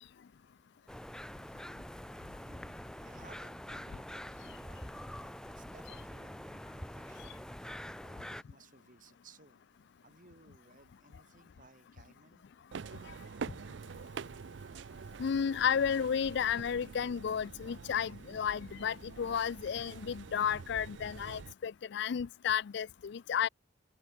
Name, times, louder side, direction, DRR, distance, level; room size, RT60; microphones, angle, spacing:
sound 1, 0.9-8.4, equal, 5° left, 0.6 m, -45 dB
voice 1, 2.4-9.6 10.0-12.4, right 3 dB, 45° right, 3.7 m, -61 dB
sound 2, 12.7-21.5, right 5 dB, 70° right, 0.5 m, -46 dB
voice 2, 15.2-23.5, left 7 dB, 65° left, 0.4 m, -32 dB
head